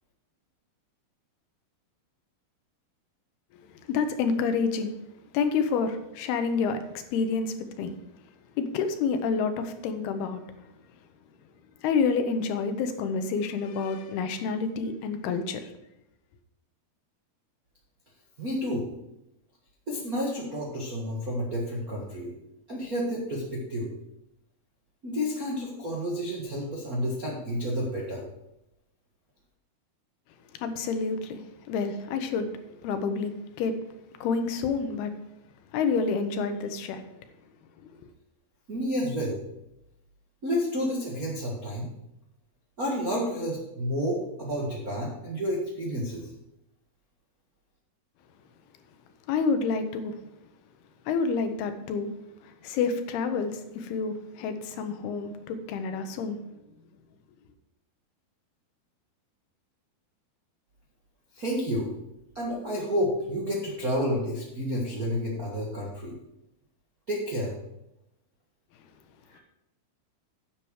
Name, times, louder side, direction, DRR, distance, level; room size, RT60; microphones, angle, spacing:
voice 1, 3.5-5.0 5.3-7.9 8.6-10.4 11.8-15.7 30.6-33.8 34.2-35.1 35.7-37.0 37.8-38.0 49.3-50.2 51.1-52.1 52.4-56.4, left 5 dB, 80° left, 8 dB, 2.9 m, -29 dB
voice 2, 18.4-18.8 19.9-22.3 22.7-23.9 25.0-28.2 38.7-39.4 40.4-41.9 42.8-46.3 61.3-61.9 62.3-66.1 67.1-67.5 69.3-69.4, equal, 50° right, -4 dB, 1.0 m, -30 dB
10.0 x 7.7 x 4.8 m, 0.86 s
omnidirectional pair, 4.5 m